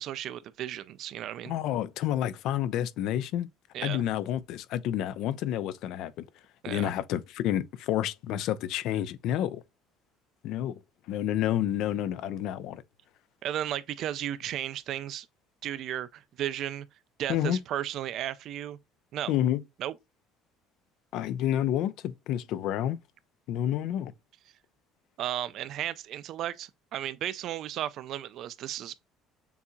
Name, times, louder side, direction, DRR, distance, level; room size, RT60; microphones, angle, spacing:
voice 1, 0.0-1.5 3.7-4.1 6.6-6.9 13.4-15.3 15.6-16.9 17.2-18.8 19.1-19.3 19.8-19.9 25.2-29.0, right 12 dB, 55° right, 0.4 m, -34 dB
voice 2, 1.5-3.5 3.8-6.3 6.7-9.6 10.4-10.8 11.1-12.8 17.3-17.6 19.3-19.6 21.1-23.0 23.5-24.1, left 11 dB, 65° left, 0.5 m, -29 dB
6.9 x 2.7 x 2.2 m
cardioid pair, 145°, 0 cm